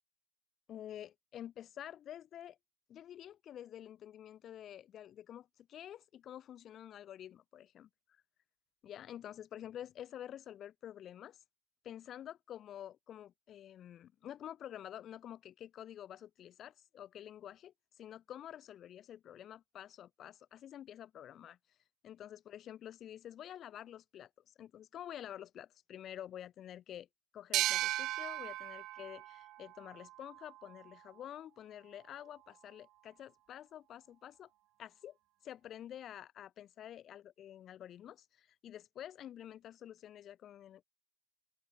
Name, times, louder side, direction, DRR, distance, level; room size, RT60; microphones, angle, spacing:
voice 1, 0.7-2.6 2.9-7.9 8.8-11.4 11.8-21.6 22.0-27.1 27.3-34.5 34.8-35.2 35.4-40.8, left 11 dB, 30° left, 5.9 m, -49 dB
sound 1, 27.5-30.9, right 16 dB, 35° right, 0.4 m, -37 dB
open air
figure-of-eight pair, 90°, 0 cm